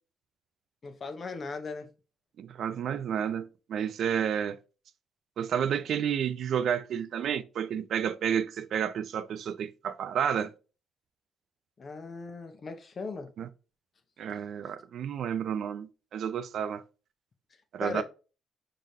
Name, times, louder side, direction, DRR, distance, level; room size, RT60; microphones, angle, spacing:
voice 1, 0.8-1.9 11.8-13.3 14.6-14.7 17.8-18.0, left 4 dB, 45° left, 0.9 m, -38 dB
voice 2, 2.4-4.6 5.4-10.5 13.4-13.5 14.2-16.8 17.7-18.0, right 8 dB, 70° right, 0.5 m, -31 dB
4.9 x 3.8 x 2.7 m
cardioid pair, 90°, 0 cm